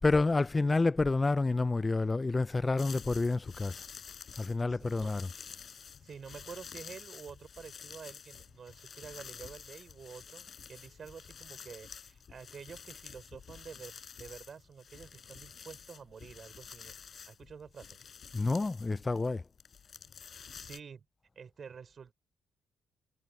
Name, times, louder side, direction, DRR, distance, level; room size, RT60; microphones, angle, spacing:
voice 1, 0.0-3.8 4.4-5.3 18.3-19.4, left 3 dB, 25° left, 0.5 m, -29 dB
sound 1, 2.8-20.8, left 7 dB, 50° left, 5.5 m, -50 dB
voice 2, 4.7-5.1 6.0-16.9 17.3-18.0 20.5-21.0 21.3-22.1, right 6 dB, 45° right, 4.9 m, -49 dB
cardioid pair, 90°, 0 cm